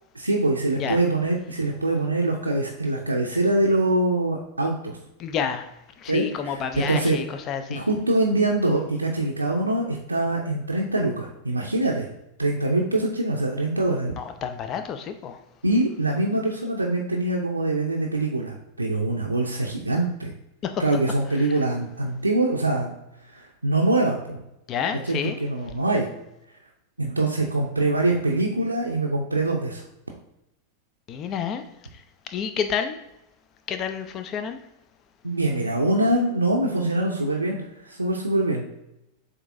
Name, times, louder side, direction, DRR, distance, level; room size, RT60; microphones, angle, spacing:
voice 1, 0.2-5.0 6.1-7.2 7.7-12.1 12.4-14.1 15.6-20.3 20.8-22.9 23.2-24.4 25.1-26.1 27.0-29.8 35.2-38.7, right 2 dB, 85° right, -1 dB, 0.5 m, -24 dB
voice 2, 5.2-7.9 14.2-15.4 20.6-20.8 21.4-21.6 24.7-25.4 31.1-31.6 31.9-32.0 32.3-33.0 33.7-34.6, left 7 dB, 30° left, 8 dB, 0.5 m, -29 dB
7.2 x 2.6 x 2.5 m, 0.85 s
figure-of-eight pair, 90°, 0 cm